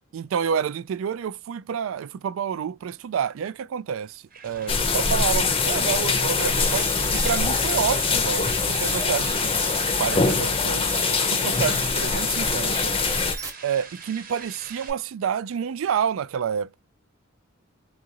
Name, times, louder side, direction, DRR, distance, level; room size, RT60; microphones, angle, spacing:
voice 1, 0.1-9.6 10.0-10.9 11.3-13.0 13.6-16.8, right 7 dB, 75° right, 0.3 m, -28 dB
sound 1, 3.9-14.9, right 5 dB, 45° right, 1.0 m, -43 dB
sound 2, 4.7-13.4, left 5 dB, 25° left, 0.6 m, -23 dB
sound 3, 5.6-13.5, right 5 dB, 15° right, 0.9 m, -36 dB
3.8 x 2.5 x 2.7 m
head